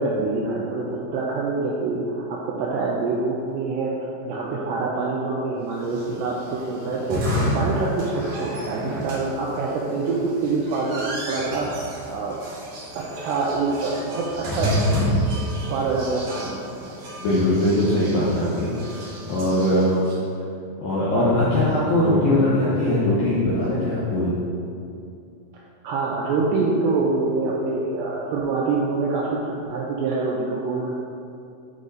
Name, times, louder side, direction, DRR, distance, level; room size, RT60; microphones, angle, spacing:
voice 1, 0.0-12.4 13.1-14.7 15.6-16.7 25.8-30.9, right 3 dB, 90° right, -4 dB, 2.5 m, -25 dB
sound 1, 5.8-20.1, equal, 65° right, 1.8 m, -30 dB
voice 2, 17.2-20.0 20.8-24.4, left 1 dB, 80° left, -8 dB, 2.1 m, -21 dB
9.3 x 4.9 x 4.0 m, 2.5 s
omnidirectional pair, 5.6 m